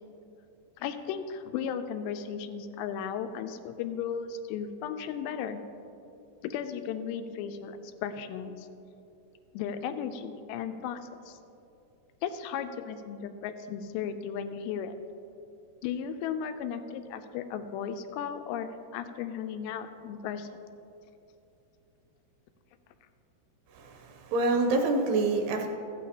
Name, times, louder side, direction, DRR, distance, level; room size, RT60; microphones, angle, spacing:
voice 1, 0.8-5.6 6.4-8.7 9.5-11.0 11.3-11.4 12.2-15.0 15.8-20.5, left 7 dB, 85° left, 8 dB, 2.7 m, -35 dB
voice 2, 23.7-25.7, right 3 dB, 80° right, 3 dB, 2.5 m, -27 dB
14.5 x 9.0 x 2.8 m, 2.8 s
omnidirectional pair, 5.0 m